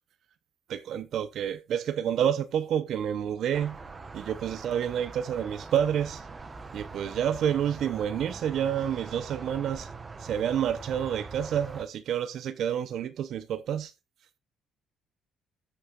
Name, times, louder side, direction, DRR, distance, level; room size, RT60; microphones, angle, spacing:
voice 1, 0.7-3.8 4.1-6.2 6.7-9.9 10.2-13.9, right 9 dB, 65° right, 0.7 m, -29 dB
sound 1, 3.5-11.8, right 3 dB, 25° right, 1.0 m, -42 dB
14.5 x 6.6 x 2.4 m
cardioid pair, 105°, 0 cm